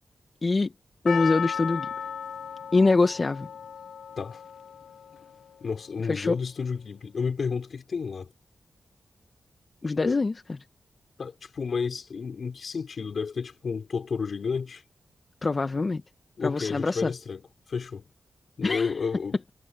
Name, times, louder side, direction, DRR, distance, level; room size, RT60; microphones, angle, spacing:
voice 1, 0.4-0.7 1.0-1.9 2.7-3.5 6.1-6.4 9.8-10.4 15.4-16.0 16.4-17.1 18.6-18.9, left 3 dB, 45° left, 1.4 m, -24 dB
Percussion, 1.1-5.4 5.7-5.8, left 7 dB, 85° left, 0.5 m, -35 dB
voice 2, 5.6-8.3 10.0-10.2 11.2-14.8 16.4-18.0 18.6-19.4, left 5 dB, 70° left, 5.4 m, -31 dB
cardioid pair, 50°, 0 cm